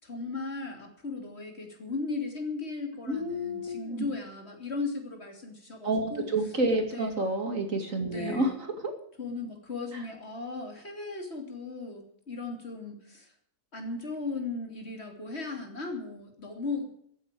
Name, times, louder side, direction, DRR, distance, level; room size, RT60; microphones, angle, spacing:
voice 1, 0.0-6.3 6.9-7.1 8.0-8.5 9.2-13.3 13.7-16.9, left 3 dB, 45° left, 3 dB, 3.3 m, -36 dB
voice 2, 3.1-4.0 5.8-8.5, right 1 dB, 60° right, 5 dB, 2.8 m, -29 dB
14.5 x 8.7 x 8.5 m, 0.65 s
omnidirectional pair, 1.6 m